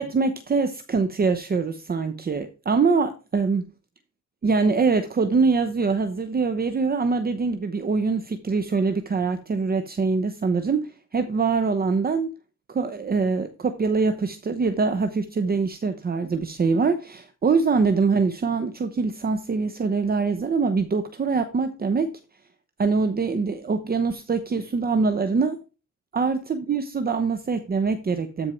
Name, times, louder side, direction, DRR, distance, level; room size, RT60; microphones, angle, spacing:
voice 1, 0.0-3.7 4.4-12.3 12.7-22.1 22.8-25.6 26.1-28.5, right 4 dB, 30° right, 0.9 m, -24 dB
13.5 x 4.6 x 4.5 m
cardioid pair, 90°, 30 cm